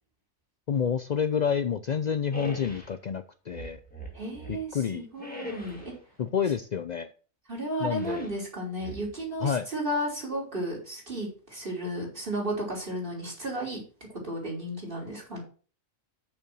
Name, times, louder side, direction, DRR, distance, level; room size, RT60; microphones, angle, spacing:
voice 1, 0.7-3.8 4.5-5.1 6.2-7.1 7.8-8.3 9.4-9.7, left 7 dB, 90° left, 10 dB, 0.3 m, -28 dB
sound 1, 2.3-3.0 3.5-4.7 5.2-6.0 7.9-8.4 8.8-9.5, left 1 dB, 5° left, 2.1 m, -41 dB
voice 2, 4.1-5.9 7.5-13.8 14.2-15.4, right 1 dB, 40° right, -2 dB, 3.7 m, -33 dB
6.7 x 5.6 x 6.1 m, 0.39 s
omnidirectional pair, 1.4 m